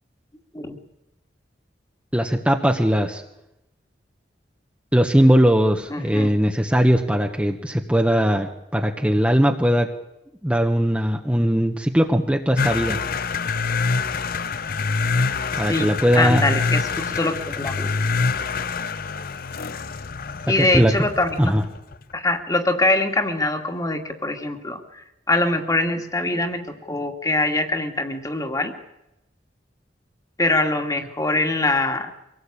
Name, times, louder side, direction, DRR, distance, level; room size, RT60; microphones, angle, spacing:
voice 1, 2.1-3.2 4.9-9.9 10.4-13.0 15.6-16.4 20.5-20.9 21.4-21.6, equal, 5° right, 2 dB, 1.2 m, -19 dB
voice 2, 5.9-6.3 15.7-15.9 16.2-17.9 20.5-21.5 22.1-28.7 30.4-32.1, left 2 dB, 20° left, 5 dB, 2.2 m, -23 dB
sound 1, 12.6-22.0, left 4 dB, 55° left, 0.8 m, -26 dB
24.5 x 18.0 x 8.6 m, 0.88 s
head